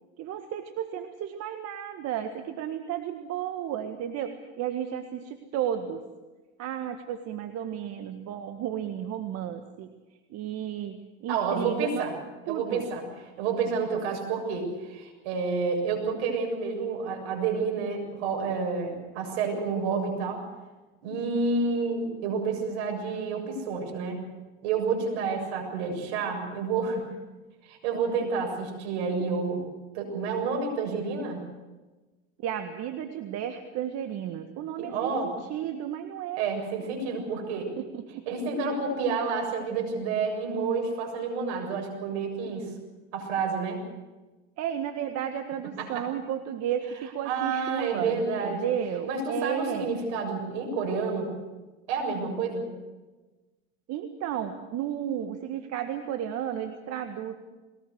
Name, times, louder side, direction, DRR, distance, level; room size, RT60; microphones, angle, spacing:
voice 1, 0.2-6.0 6.6-9.9 10.3-12.1 12.5-12.9 32.4-36.4 37.8-38.3 44.6-49.9 53.9-57.3, right 10 dB, 50° right, 7 dB, 1.8 m, -33 dB
voice 2, 11.3-12.1 12.5-13.0 13.4-20.4 21.0-24.2 24.6-27.1 27.6-29.6 29.9-31.4 34.8-35.3 36.4-37.7 38.3-42.7 43.1-43.8 45.8-46.0 47.3-48.7 49.1-51.3 51.9-52.7, right 4 dB, 75° right, 3 dB, 7.4 m, -29 dB
21.5 x 19.0 x 8.1 m, 1.2 s
supercardioid pair, 100°, 33 cm